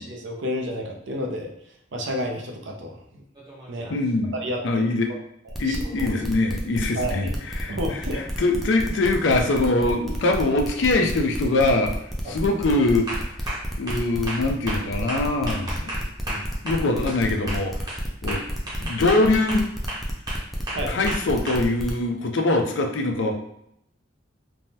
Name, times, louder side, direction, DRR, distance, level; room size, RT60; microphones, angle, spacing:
voice 1, 0.0-1.5 1.9-3.0 3.7-3.9 4.3-4.8 5.5-6.1 6.9-7.4 7.7-8.2 12.2-12.3 16.0-16.4 20.7-21.0, equal, 70° right, 1 dB, 0.5 m, -31 dB
sound 1, 3.3-4.1 8.3-8.4 9.9-10.2 10.6-11.0 11.4-11.8 12.2-12.5 13.1-17.2 17.5-21.6, right 1 dB, 20° right, 0.7 m, -34 dB
voice 2, 3.9-4.4 4.6-5.1 5.6-13.4 13.8-15.9 16.6-17.9 18.2-18.4 18.8-19.7 20.9-23.4, left 2 dB, 70° left, 3 dB, 0.4 m, -23 dB
sound 2, 5.5-21.9, equal, ahead, 0.3 m, -32 dB
3.3 x 2.1 x 2.7 m, 0.76 s
head